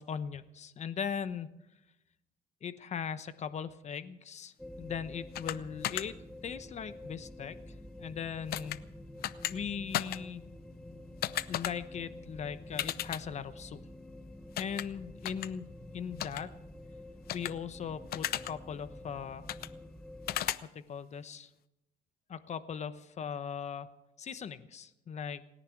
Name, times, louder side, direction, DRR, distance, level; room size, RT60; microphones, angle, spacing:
voice 1, 0.0-1.5 2.6-6.2 6.4-7.6 8.0-8.9 9.5-10.4 11.5-13.8 14.6-15.6 15.9-16.5 17.3-19.5 20.7-21.5 22.3-23.9 24.2-25.4, left 7 dB, 40° left, 13 dB, 1.0 m, -39 dB
sound 1, 4.6-20.6, left 1 dB, 5° left, 0.8 m, -48 dB
sound 2, 5.4-5.6 5.8-6.0 8.5-8.8 9.2-9.5 9.9-10.2 11.2-11.7 12.8-13.2 14.6-14.8 15.3-15.5 16.2-16.4 17.3-17.5 18.1-18.5 19.5-19.7 20.3-20.6, left 13 dB, 65° left, 0.7 m, -33 dB
28.5 x 10.5 x 4.7 m, 0.90 s
cardioid pair, 110°, 17 cm